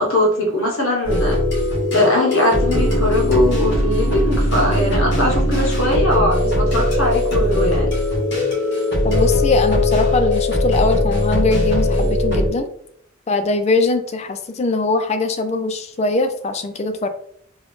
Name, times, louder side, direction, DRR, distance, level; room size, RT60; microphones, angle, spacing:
voice 1, 0.0-1.4 1.9-7.9, left 1 dB, 75° left, -1 dB, 1.1 m, -20 dB
sound 1, 1.0-12.5, left 1 dB, 55° left, 1.5 m, -19 dB
voice 2, 9.0-12.7 13.3-17.1, left 2 dB, 30° left, 8 dB, 0.4 m, -21 dB
3.6 x 2.4 x 3.5 m, 0.65 s
head